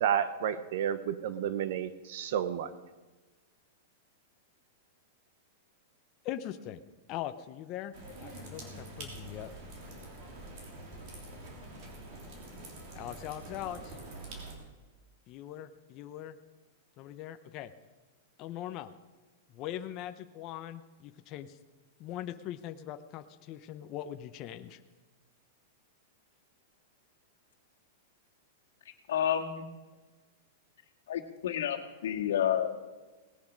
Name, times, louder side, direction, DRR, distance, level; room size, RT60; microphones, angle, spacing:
voice 1, 0.0-2.7, right 9 dB, 55° right, 13 dB, 0.9 m, -31 dB
voice 2, 6.2-6.8 7.1-7.9 8.2-9.5 12.9-14.0 15.3-16.4 17.0-17.7 18.4-18.9 19.5-21.6 22.0-24.8, left 12 dB, 30° left, 8 dB, 0.7 m, -41 dB
sound 1, 7.9-14.6, right 1 dB, 40° right, 3.3 m, -46 dB
voice 3, 29.1-29.7 31.1-32.9, left 9 dB, 80° left, 2 dB, 1.8 m, -30 dB
18.5 x 10.5 x 5.2 m, 1.3 s
supercardioid pair, 165°, 0 cm